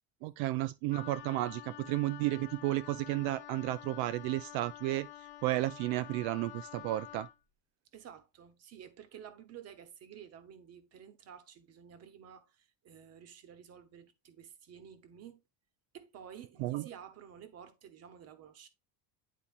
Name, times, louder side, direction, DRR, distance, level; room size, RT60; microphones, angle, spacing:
voice 1, 0.2-7.3 16.6-16.9, right 16 dB, 70° right, 0.5 m, -33 dB
Wind instrument woodwind instrument, 0.9-7.4, left 13 dB, 50° left, 0.9 m, -49 dB
voice 2, 7.9-15.4 15.9-18.7, right 8 dB, 30° right, 0.9 m, -52 dB
10.0 x 4.2 x 2.4 m
cardioid pair, 175°, 50 cm